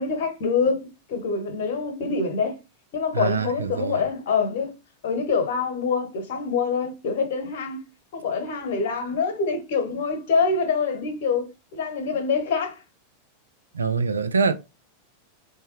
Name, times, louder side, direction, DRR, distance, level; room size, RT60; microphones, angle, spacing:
voice 1, 0.0-2.6 2.9-4.7 5.0-7.8 8.1-12.8, left 5 dB, 55° left, 1.0 m, -25 dB
voice 2, 3.1-4.0 13.7-14.6, right 5 dB, 75° right, 0.4 m, -24 dB
3.5 x 2.7 x 3.1 m
figure-of-eight pair, 90°, 0 cm